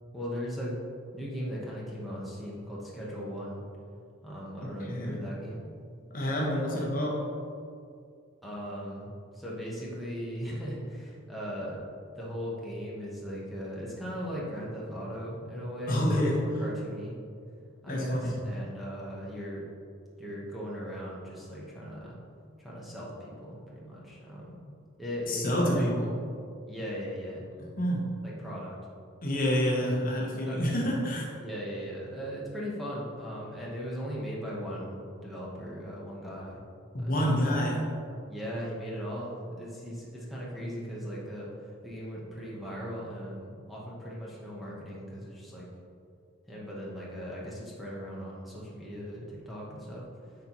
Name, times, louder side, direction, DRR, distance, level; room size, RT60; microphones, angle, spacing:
voice 1, 0.1-0.8 1.1-3.6 4.2-5.6 8.4-11.9 12.1-17.2 17.8-19.6 20.2-22.2 22.6-24.6 25.0-25.9 26.7-27.5 28.2-28.7 30.4-30.8 31.4-36.6 37.0-37.5 38.3-45.7 46.5-50.4, equal, ahead, -6 dB, 1.0 m, -38 dB
voice 2, 4.6-5.2 6.1-7.3 15.9-16.5 17.9-18.4 25.3-26.1 27.8-28.2 29.2-31.3 36.9-37.9, equal, 40° left, -2 dB, 0.8 m, -28 dB
9.7 x 4.1 x 3.0 m, 2.3 s
head